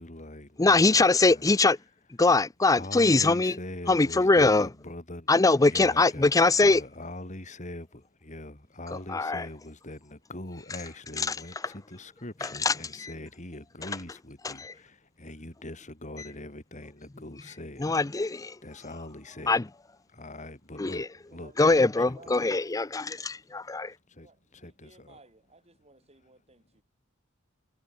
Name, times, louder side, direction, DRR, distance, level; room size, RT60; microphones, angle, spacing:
voice 1, 0.0-1.8 2.7-5.3 5.7-19.6 20.1-22.6 24.1-25.2 26.2-26.3, left 1 dB, 35° left, 4.2 m, -43 dB
voice 2, 0.6-1.8 2.2-3.5 3.9-4.7 5.3-6.8 9.1-9.5 11.3-11.4 12.6-12.7 14.4-14.7 17.8-18.5 19.5-19.6 20.8-21.0 21.6-23.9, left 3 dB, 15° left, 0.5 m, -22 dB
voice 3, 21.3-22.4 24.2-26.8, right 3 dB, 30° right, 6.3 m, -57 dB
head